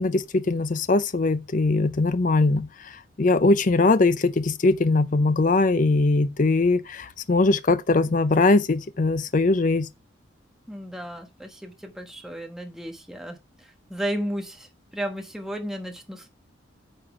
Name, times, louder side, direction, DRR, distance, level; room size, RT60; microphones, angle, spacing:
voice 1, 0.0-9.9, left 3 dB, 40° left, 0.5 m, -21 dB
voice 2, 10.7-16.3, equal, ahead, 1.2 m, -34 dB
8.9 x 4.3 x 4.8 m
head